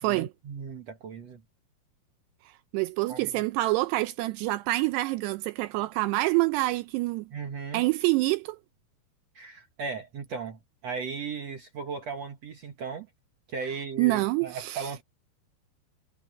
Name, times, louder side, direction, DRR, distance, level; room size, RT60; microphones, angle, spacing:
voice 1, 0.0-1.4 3.1-3.3 7.3-7.8 9.4-13.1 13.5-15.0, right 5 dB, 65° right, 1.7 m, -37 dB
voice 2, 2.7-7.3 7.7-8.6 14.0-14.9, right 19 dB, 80° right, 2.5 m, -26 dB
omnidirectional pair, 5.1 m